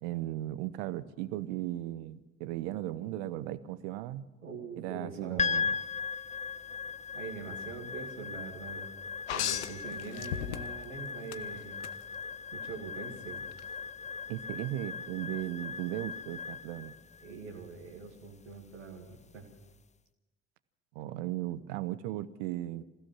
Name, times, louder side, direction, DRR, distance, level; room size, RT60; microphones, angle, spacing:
voice 1, 0.0-4.3 4.8-5.8 14.3-16.9 20.9-22.8, right 14 dB, 70° right, 15 dB, 1.0 m, -36 dB
voice 2, 4.4-5.5 7.1-8.9 9.3-11.8 12.5-13.4 17.2-19.5, right 4 dB, 90° right, -4 dB, 2.6 m, -43 dB
sound 1, 5.4-19.8, left 6 dB, 20° left, 0.7 m, -38 dB
sound 2, 9.3-10.9 11.3-11.9 13.5-13.6, left 11 dB, 80° left, 0.9 m, -35 dB
27.5 x 15.5 x 6.2 m, 1.1 s
figure-of-eight pair, 50°, 35 cm